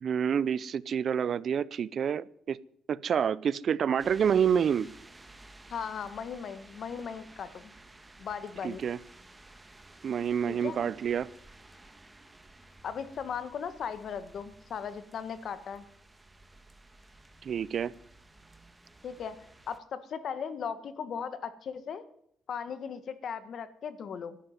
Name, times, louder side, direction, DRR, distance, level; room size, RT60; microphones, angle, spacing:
voice 1, 0.0-2.6 2.9-4.9 8.6-9.0 10.0-11.3 17.4-17.9, right 8 dB, 55° right, 0.5 m, -28 dB
sound 1, 4.0-19.8, right 2 dB, 15° right, 1.7 m, -54 dB
voice 2, 5.7-7.7 8.2-8.8 10.5-10.8 12.8-15.8 19.0-19.4 19.7-22.0 22.5-24.4, left 7 dB, 60° left, 1.6 m, -37 dB
12.5 x 11.0 x 9.6 m
cardioid pair, 90°, 0 cm